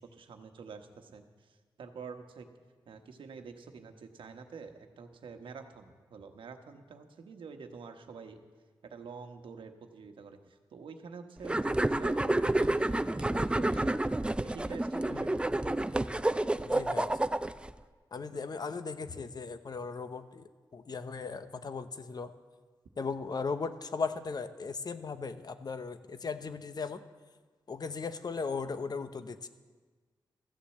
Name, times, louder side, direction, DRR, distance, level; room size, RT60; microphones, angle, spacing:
voice 1, 0.0-2.5 2.9-8.4 8.8-13.9 14.4-15.5, right 5 dB, 80° right, 6 dB, 1.1 m, -47 dB
sound 1, 11.4-17.7, right 1 dB, 10° right, 0.5 m, -29 dB
voice 2, 15.1-15.4 16.6-17.2 18.1-22.3 23.0-27.0 27.7-29.5, left 4 dB, 50° left, 11 dB, 0.8 m, -37 dB
14.0 x 7.0 x 7.8 m, 1.4 s
cardioid pair, 50°, 9 cm